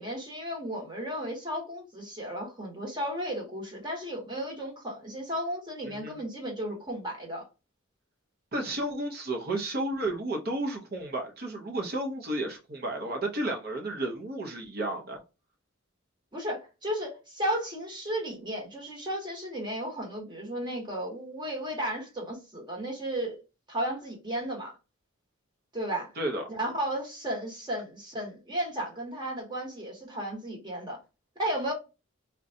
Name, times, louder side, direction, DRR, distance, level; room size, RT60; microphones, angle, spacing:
voice 1, 0.0-7.5 16.3-23.4 23.7-24.7 25.7-26.1 26.5-31.0 31.4-31.7, right 1 dB, 20° right, 1.0 m, -34 dB
voice 2, 5.9-6.2 8.5-15.2 26.2-26.4, right 1 dB, 50° right, 0.7 m, -32 dB
3.9 x 2.2 x 2.6 m
head